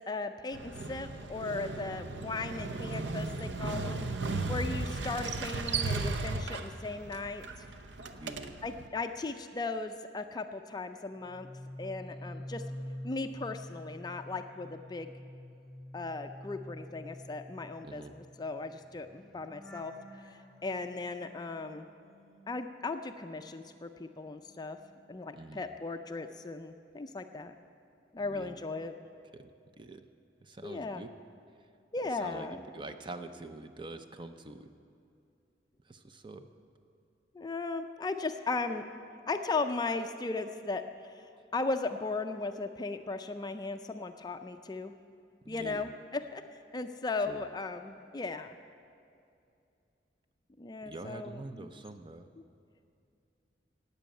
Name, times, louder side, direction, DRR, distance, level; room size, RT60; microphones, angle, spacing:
voice 1, 0.1-4.1 4.5-7.4 8.6-11.5 11.8-12.6 13.0-15.1 15.9-21.9 22.5-24.8 25.1-27.5 28.1-29.0 30.6-31.1 31.9-32.6 37.3-38.8 39.3-44.9 45.5-46.4 46.7-48.6 50.6-51.7, left 3 dB, 25° left, 7 dB, 0.4 m, -37 dB
Motorcycle, 0.5-8.9, right 3 dB, 85° right, 0.7 m, -36 dB
voice 2, 8.1-8.6 17.8-18.1 25.4-25.6 28.2-28.6 29.3-29.5 29.8-30.0 30.4-31.1 32.2-34.7 35.9-36.5 45.4-45.9 47.3-47.4 50.8-52.3, right 2 dB, 25° right, 8 dB, 0.6 m, -45 dB
sound 1, 11.1-23.4 23.7-25.8 26.1-26.5, left 1 dB, ahead, 1.4 m, -48 dB
12.5 x 8.4 x 8.9 m, 2.6 s
head